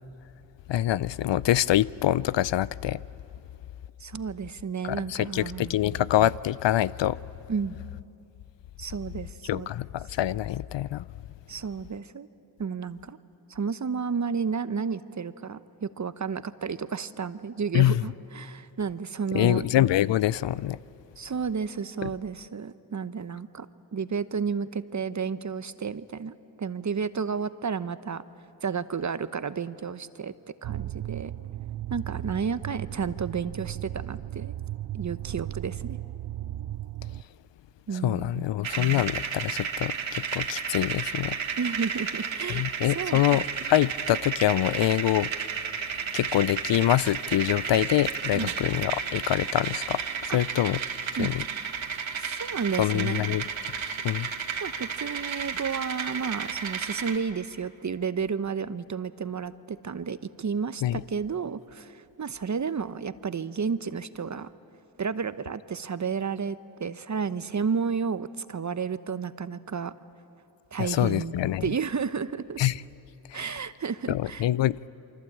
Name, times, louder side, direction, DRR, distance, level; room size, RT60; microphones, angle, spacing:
voice 1, 0.7-3.0 4.8-7.2 9.5-11.0 17.7-18.0 19.3-20.8 22.0-22.1 38.0-41.4 42.5-45.3 46.1-50.8 51.2-51.4 52.8-53.4 54.0-54.3 60.8-61.0 70.8-71.6 72.6-72.8 73.3-73.4 74.1-74.9, left 13 dB, 70° left, 0.6 m, -25 dB
voice 2, 4.0-5.8 7.5-7.8 8.8-9.7 11.5-12.3 12.6-13.2 13.5-19.6 21.2-23.7 23.9-28.2 28.6-30.3 30.6-31.3 31.9-34.5 34.9-36.0 37.9-38.5 41.6-43.4 48.3-48.5 50.3-50.4 51.2-51.3 52.2-53.3 54.6-64.5 65.0-69.9 70.7-71.3 71.6-72.6 73.3-74.5, right 6 dB, 40° right, 1.0 m, -32 dB
sound 1, 30.6-37.2, right 13 dB, 60° right, 0.6 m, -36 dB
sound 2, 38.6-57.2, right 6 dB, 75° right, 2.1 m, -32 dB
28.0 x 24.5 x 8.7 m
cardioid pair, 60°, 46 cm